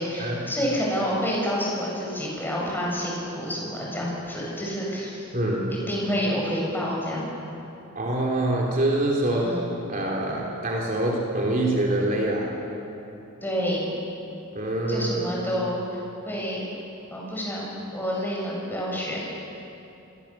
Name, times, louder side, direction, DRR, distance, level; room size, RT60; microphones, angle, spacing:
voice 1, 0.0-5.3 5.9-7.3 9.3-9.7 13.4-13.9 14.9-16.0 16.3-16.7 17.1-19.2, equal, 10° left, -4 dB, 7.3 m, -28 dB
voice 2, 5.3-5.7 8.0-9.5 9.9-12.6 14.6-15.4, right 1 dB, 40° right, -2 dB, 3.4 m, -25 dB
29.0 x 23.0 x 7.4 m, 2.9 s
head